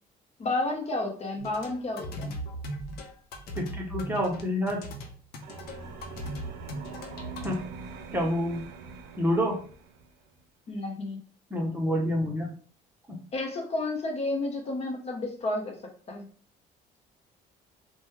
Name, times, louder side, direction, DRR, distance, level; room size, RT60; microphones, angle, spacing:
voice 1, 0.4-2.4 10.7-11.2 13.3-15.8 16.1-16.2, left 2 dB, 40° left, 2 dB, 0.8 m, -31 dB
sound 1, 1.4-7.5, equal, 70° left, 0.7 m, -38 dB
voice 2, 3.6-4.8 7.4-7.6 8.1-8.7 9.2-9.6 11.5-12.5 13.1-13.2, equal, 10° right, -1 dB, 0.8 m, -28 dB
sound 2, 5.4-10.1, right 4 dB, 90° right, 0.5 m, -43 dB
3.0 x 2.2 x 3.2 m, 0.43 s
cardioid pair, 110°, 17 cm